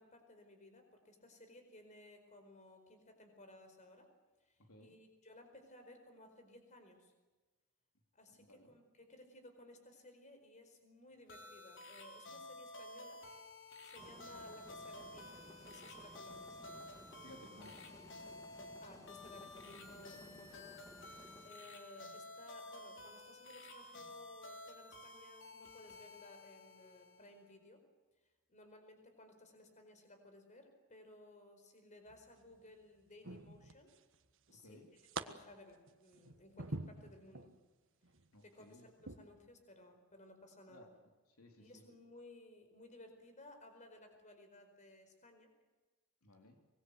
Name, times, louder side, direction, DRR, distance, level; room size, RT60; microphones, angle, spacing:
voice 1, 0.0-4.1 4.4-7.1 8.1-13.2 13.8-16.6 18.6-20.8 21.1-27.8 28.5-33.9 34.5-37.5 38.4-40.9 41.6-45.6, left 1 dB, 35° left, 6 dB, 4.7 m, -59 dB
voice 2, 4.6-4.9 8.3-8.7 17.2-18.0 34.5-34.9 38.3-38.9 40.7-41.1 41.4-41.8 46.2-46.6, left 1 dB, 75° left, 3 dB, 3.4 m, -59 dB
sound 1, 11.3-27.5, left 2 dB, 55° left, 3.8 m, -53 dB
sound 2, 14.0-21.5, left 1 dB, 15° left, 2.0 m, -58 dB
sound 3, 32.1-32.6 33.2-34.2 34.5-35.2 35.7-37.5 38.0-38.3 39.0-39.2, right 3 dB, 60° right, 1.5 m, -46 dB
25.0 x 21.0 x 7.9 m, 1.2 s
head